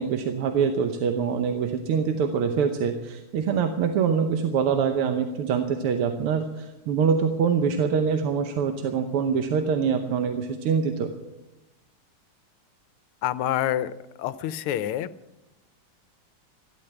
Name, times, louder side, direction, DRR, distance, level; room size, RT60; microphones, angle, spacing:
voice 1, 0.0-11.1, right 6 dB, 85° right, 6 dB, 1.9 m, -24 dB
voice 2, 13.2-13.9 14.2-15.1, left 12 dB, 85° left, 15 dB, 1.6 m, -27 dB
14.5 x 12.0 x 7.0 m, 1.0 s
omnidirectional pair, 2.4 m